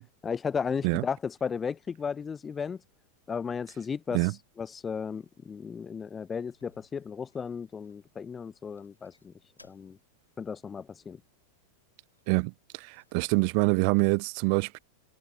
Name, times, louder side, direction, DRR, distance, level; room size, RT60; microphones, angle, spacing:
voice 1, 0.2-2.8 3.3-4.2 4.6-9.3 9.6-10.0 10.4-11.2, left 6 dB, 20° left, 0.3 m, -34 dB
sound 1, 6.4-8.3 8.8-9.9 10.2-10.3 12.0-13.5, left 2 dB, 85° left, 5.3 m, -64 dB
voice 2, 12.3-14.8, right 39 dB, 45° right, 0.5 m, -26 dB
figure-of-eight pair, 90°, 0 cm